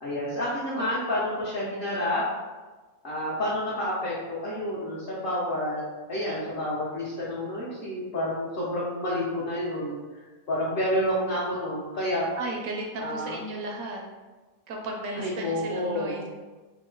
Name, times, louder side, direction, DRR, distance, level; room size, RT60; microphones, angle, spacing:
voice 1, 0.0-2.2 3.0-5.8 6.1-10.0 10.5-12.3 13.0-13.4 15.2-16.2, left 1 dB, 55° left, -7 dB, 0.7 m, -29 dB
voice 2, 12.4-14.0 14.7-16.3, right 2 dB, 80° right, 0 dB, 1.0 m, -34 dB
2.9 x 2.1 x 3.7 m, 1.3 s
omnidirectional pair, 1.5 m